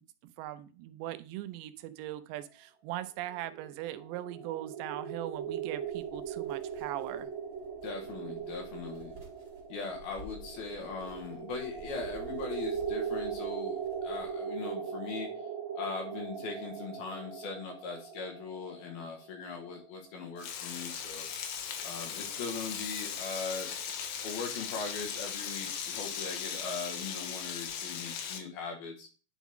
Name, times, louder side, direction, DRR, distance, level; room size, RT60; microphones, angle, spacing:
voice 1, 0.4-7.3, right 14 dB, 85° right, 11 dB, 2.9 m, -40 dB
sound 1, 3.3-20.1, right 7 dB, 60° right, 2.6 m, -39 dB
sound 2, 5.3-14.6, equal, 15° right, 2.5 m, -54 dB
voice 2, 7.8-9.1 9.7-15.3 15.7-21.3 21.8-23.7 24.2-29.1, left 4 dB, 65° left, 2 dB, 3.4 m, -40 dB
Frying (food), 20.4-28.4, left 7 dB, 90° left, 3.5 m, -38 dB
10.0 x 7.2 x 3.7 m, 0.36 s
omnidirectional pair, 5.0 m